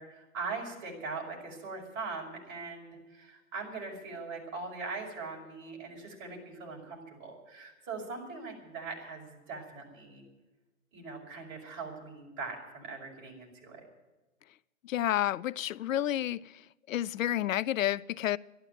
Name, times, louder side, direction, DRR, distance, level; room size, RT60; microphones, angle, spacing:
voice 1, 0.0-10.2 10.9-13.8, right 4 dB, 30° right, 5.6 m, -41 dB
voice 2, 14.8-18.4, left 12 dB, 80° left, 0.5 m, -30 dB
13.0 x 11.5 x 9.1 m
hypercardioid pair, 150°, 39 cm